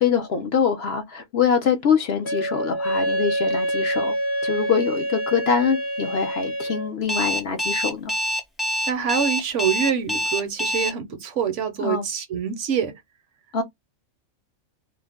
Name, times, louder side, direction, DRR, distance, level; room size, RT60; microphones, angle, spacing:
voice 1, 0.0-4.1 4.4-8.1 11.8-12.1 13.5-13.6, left 6 dB, 60° left, 0.8 m, -24 dB
Wind instrument woodwind instrument, 2.2-6.9, right 1 dB, 30° left, 0.7 m, -26 dB
Alarm, 7.1-10.9, equal, ahead, 0.3 m, -25 dB
voice 2, 8.9-13.0, right 7 dB, 65° right, 0.9 m, -25 dB
2.5 x 2.1 x 3.3 m
omnidirectional pair, 1.4 m